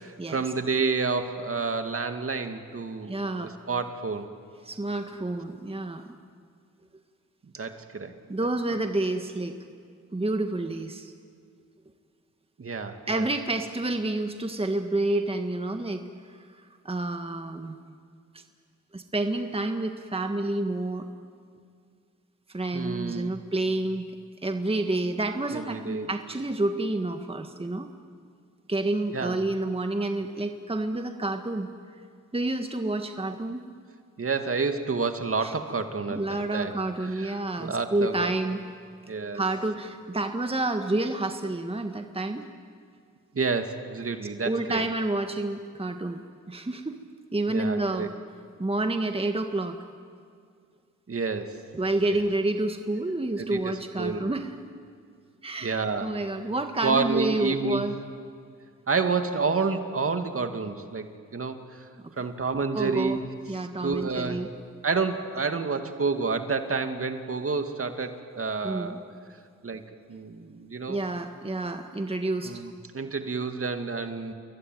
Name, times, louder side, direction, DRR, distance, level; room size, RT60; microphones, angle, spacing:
voice 1, 0.0-3.2 3.7-4.3 7.5-8.2 12.6-13.3 22.7-23.3 25.5-26.1 29.1-29.4 34.2-36.7 37.0-38.3 39.1-39.4 43.3-44.9 47.5-48.1 51.1-51.6 53.4-54.3 55.6-56.2 56.8-57.8 58.9-61.9 62.2-63.2 63.8-64.5 64.8-69.0 69.6-69.8 70.1-71.0 72.4-74.3, right 4 dB, 45° right, 7 dB, 2.3 m, -29 dB
voice 2, 3.1-3.5 4.6-6.1 8.3-9.5 10.1-11.1 13.1-16.0 16.3-16.4 16.8-17.8 18.3-18.4 18.9-21.0 22.5-24.1 24.4-27.9 28.7-31.7 32.3-33.6 35.4-35.5 36.1-38.6 39.3-42.5 44.4-47.0 47.3-48.1 48.6-49.8 51.7-54.5 55.4-57.9 62.7-63.2 63.5-64.5 68.6-69.0 70.9-72.6, right 2 dB, 15° right, 6 dB, 1.7 m, -29 dB
28.5 x 21.5 x 9.4 m, 2.2 s
cardioid pair, 60°, 32 cm